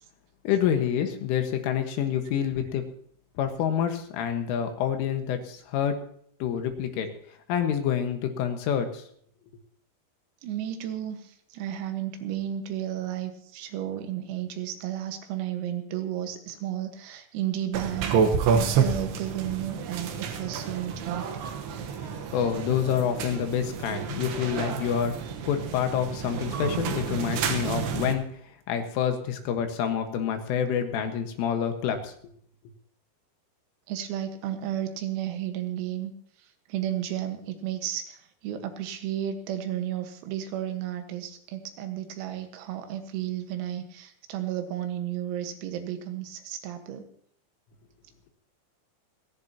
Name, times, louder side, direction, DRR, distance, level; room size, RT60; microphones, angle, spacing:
voice 1, 0.5-2.9 3.4-6.0 6.4-7.1 7.5-9.1 22.3-25.1 25.5-28.3 28.7-32.1, left 8 dB, 75° left, 6 dB, 3.9 m, -27 dB
voice 2, 10.4-21.3 33.9-36.1 36.4-47.1, right 11 dB, 90° right, 6 dB, 4.2 m, -33 dB
sound 1, 17.7-28.1, right 6 dB, 70° right, 2.7 m, -29 dB
29.0 x 11.0 x 2.9 m, 0.62 s
omnidirectional pair, 6.0 m